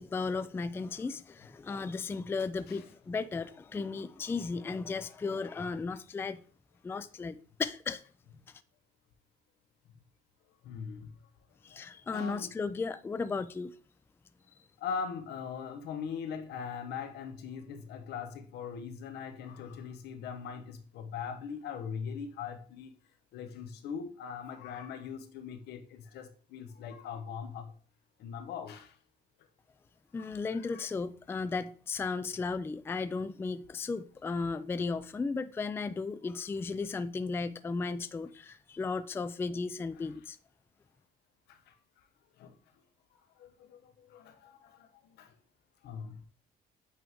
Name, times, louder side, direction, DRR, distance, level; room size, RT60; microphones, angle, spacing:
voice 1, 0.0-6.4 6.8-8.0 11.6-13.7 30.1-40.4, left 4 dB, 15° left, 0.3 m, -35 dB
voice 2, 10.6-11.1 11.7-11.8 12.1-12.5 14.8-23.0 23.3-27.7 28.2-29.0 30.2-30.9 40.0-40.1 41.5-41.7 42.4-42.6 43.4-45.3 45.8-46.2, left 6 dB, 75° left, 1.0 m, -41 dB
8.4 x 3.7 x 3.0 m
cardioid pair, 110°, 17 cm